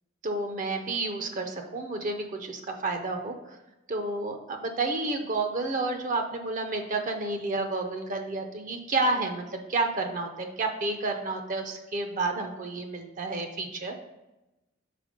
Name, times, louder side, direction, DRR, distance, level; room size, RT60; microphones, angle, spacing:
voice 1, 0.2-3.6 3.9-13.9, right 3 dB, 40° right, 5 dB, 0.5 m, -30 dB
5.0 x 4.1 x 5.1 m, 0.98 s
head